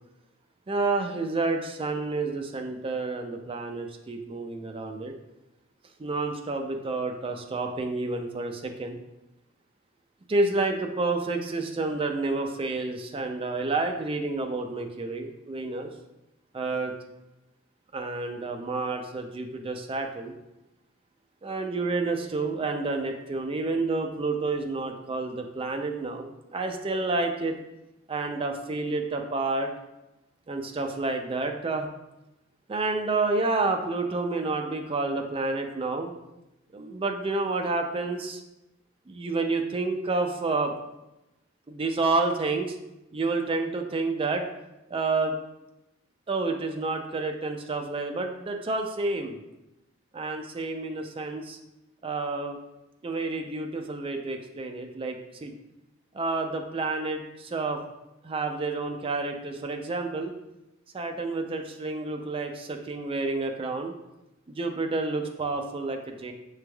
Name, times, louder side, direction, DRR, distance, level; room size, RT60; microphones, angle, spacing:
voice 1, 0.7-5.1 6.0-9.0 10.3-15.9 16.5-16.9 17.9-20.3 21.4-27.6 28.1-29.7 30.5-31.9 32.7-36.1 36.7-38.4 39.1-40.7 41.7-42.8 43.1-44.4 44.9-45.3 46.3-49.4 50.1-51.6 52.0-52.6 53.0-55.5 56.1-57.8 58.2-60.3 60.9-63.9 64.5-66.3, right 3 dB, 25° right, 4 dB, 0.4 m, -29 dB
6.0 x 3.2 x 2.2 m, 0.95 s
head